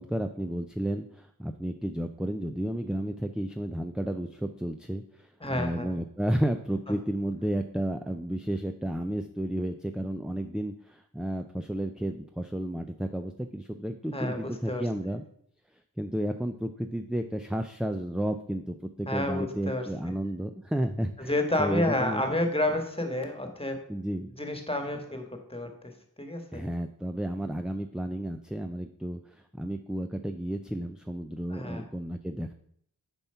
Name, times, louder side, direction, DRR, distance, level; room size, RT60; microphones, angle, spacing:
voice 1, 0.0-15.3 16.0-22.2 23.9-24.3 26.5-32.5, right 1 dB, ahead, 6 dB, 0.4 m, -32 dB
voice 2, 5.4-5.9 6.9-7.0 14.1-14.8 19.1-19.9 21.2-23.9 24.4-25.9 26.2-26.6 31.5-31.9, left 1 dB, 15° left, 4 dB, 1.4 m, -30 dB
7.1 x 4.3 x 5.6 m, 0.66 s
wide cardioid pair, 45°, 38 cm